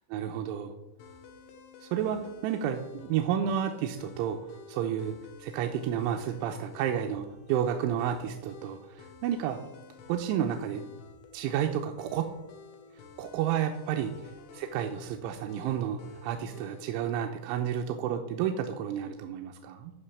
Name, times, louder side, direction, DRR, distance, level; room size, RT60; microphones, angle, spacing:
voice 1, 0.1-0.7 1.8-4.4 4.7-5.1 5.4-9.6 10.1-10.8 11.3-12.3 13.2-14.1 14.6-19.9, right 9 dB, 85° right, 4 dB, 3.1 m, -31 dB
sound 1, 1.0-17.0, left 4 dB, 80° left, 3.5 m, -51 dB
13.0 x 5.2 x 7.0 m, 1.0 s
omnidirectional pair, 5.6 m